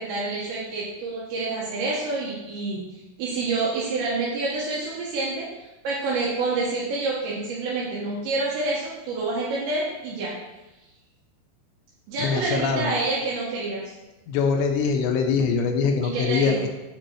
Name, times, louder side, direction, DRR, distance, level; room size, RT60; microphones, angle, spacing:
voice 1, 0.0-5.5 5.8-10.3 12.1-13.9 16.1-16.6, right 3 dB, 80° right, -5 dB, 3.2 m, -28 dB
voice 2, 12.2-13.0 14.3-16.7, left 5 dB, 80° left, 3 dB, 2.7 m, -23 dB
7.5 x 5.4 x 2.8 m, 1.0 s
omnidirectional pair, 5.3 m